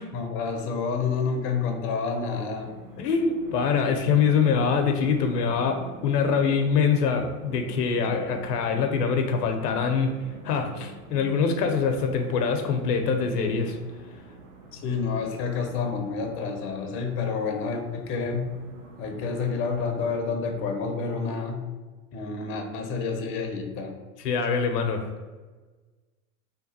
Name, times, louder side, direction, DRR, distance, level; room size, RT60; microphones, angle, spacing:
voice 1, 0.1-2.7 14.7-18.5 19.0-21.6 22.1-24.0, left 5 dB, 30° left, 4 dB, 0.5 m, -29 dB
sound 1, 2.3-20.2, right 4 dB, 45° right, 0.7 m, -45 dB
voice 2, 3.0-10.1 10.4-13.8 24.2-25.0, left 6 dB, 80° left, 5 dB, 0.6 m, -24 dB
2.8 x 2.2 x 4.1 m, 1.3 s
hypercardioid pair, 105°, 47 cm